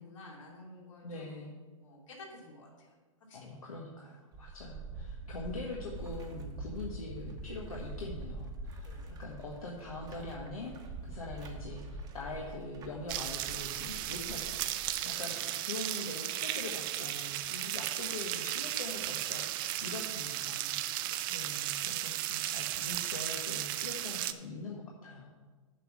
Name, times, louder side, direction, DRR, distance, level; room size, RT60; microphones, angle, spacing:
voice 1, 0.0-1.4 1.8-3.0 3.3-3.5 8.8-9.1 14.9-15.2 21.0-21.2, left 2 dB, 65° left, -3 dB, 3.0 m, -52 dB
voice 2, 1.0-1.6 3.3-10.7 11.0-25.3, left 2 dB, 85° left, -3 dB, 1.5 m, -43 dB
sound 1, 4.3-15.1, right 2 dB, 20° right, 1.0 m, -44 dB
sound 2, 13.1-24.3, right 14 dB, 40° right, 0.5 m, -35 dB
7.4 x 5.5 x 7.3 m, 1.4 s
hypercardioid pair, 120°, 18 cm